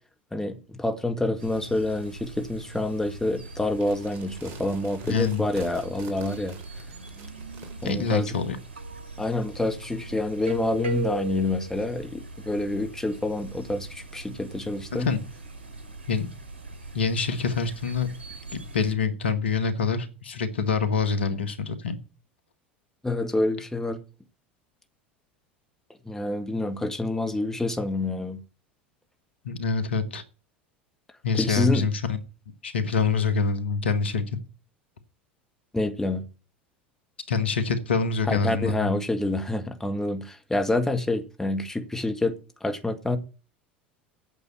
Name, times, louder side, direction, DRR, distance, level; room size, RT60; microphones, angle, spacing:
voice 1, 0.3-6.6 7.8-8.3 9.2-15.1 23.0-24.0 26.0-28.4 31.3-31.9 35.7-36.2 38.3-42.3 42.6-43.2, left 2 dB, 10° left, 1.7 m, -27 dB
sound 1, 1.4-18.9, right 2 dB, 80° right, 2.0 m, -40 dB
sound 2, 3.7-8.0, right 5 dB, 50° right, 3.1 m, -46 dB
voice 2, 5.0-5.4 7.8-8.6 15.0-15.2 16.1-16.3 16.9-18.1 18.5-22.0 29.4-30.2 31.2-32.2 32.6-34.2 37.3-38.9, left 5 dB, 80° left, 1.5 m, -26 dB
9.1 x 6.7 x 8.5 m
hypercardioid pair, 80°, 6 cm